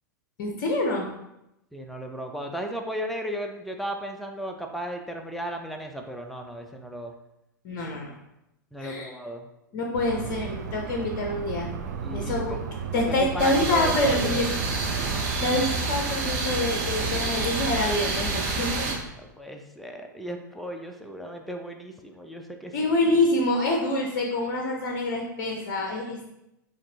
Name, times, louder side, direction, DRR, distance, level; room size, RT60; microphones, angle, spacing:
voice 1, 0.4-1.1 7.6-8.1 8.8-9.1 9.7-11.7 12.1-12.6 12.9-14.5 15.4-18.9 22.7-26.3, left 2 dB, 45° left, 1 dB, 0.7 m, -26 dB
voice 2, 1.7-7.1 8.7-9.5 12.0-12.6 12.9-14.4 19.2-22.9, equal, ahead, 3 dB, 0.4 m, -35 dB
sound 1, 9.9-15.7, right 6 dB, 60° right, 0.4 m, -34 dB
sound 2, 13.4-18.9, right 3 dB, 45° right, 0.9 m, -28 dB
5.8 x 2.5 x 2.8 m, 0.87 s
figure-of-eight pair, 95°, 10 cm